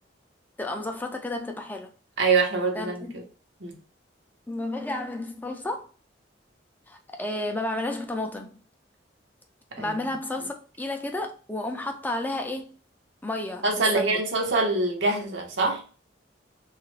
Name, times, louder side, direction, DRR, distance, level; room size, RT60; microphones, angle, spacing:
voice 1, 0.6-1.9 2.8-3.1 4.5-5.9 6.9-8.6 9.8-12.8 13.2-14.2, left 2 dB, 10° left, 0.3 m, -32 dB
voice 2, 2.2-3.2 3.6-3.8 9.8-10.0 13.6-15.8, right 3 dB, 85° right, 0.9 m, -24 dB
2.9 x 2.4 x 3.1 m
head